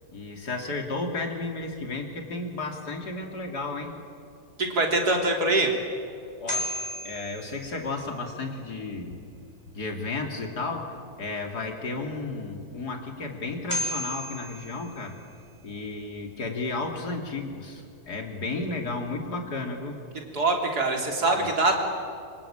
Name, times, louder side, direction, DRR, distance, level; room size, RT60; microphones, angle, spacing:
voice 1, 0.1-4.0 6.4-6.8 7.0-9.2 9.7-15.2 15.6-20.0 21.4-21.5, left 3 dB, 80° left, 3 dB, 3.4 m, -33 dB
voice 2, 4.6-5.7 20.3-21.8, right 2 dB, 80° right, 1 dB, 3.9 m, -23 dB
sound 1, 6.2-8.4 13.3-13.4 13.7-15.6, left 1 dB, 15° left, 5.7 m, -34 dB
26.0 x 25.5 x 8.9 m, 2.4 s
omnidirectional pair, 1.7 m